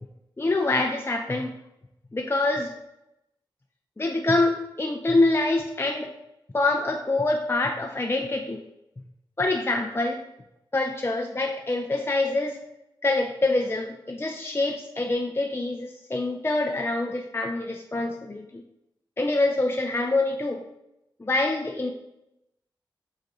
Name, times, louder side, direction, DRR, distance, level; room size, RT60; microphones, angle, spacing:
voice 1, 0.4-1.5 2.1-2.7 4.0-6.1 6.5-8.6 9.4-10.2 10.7-12.6 13.0-18.6 19.2-20.6 21.2-21.9, left 2 dB, 25° left, 2 dB, 0.6 m, -25 dB
5.0 x 3.9 x 5.2 m, 0.86 s
cardioid pair, 45°, 9 cm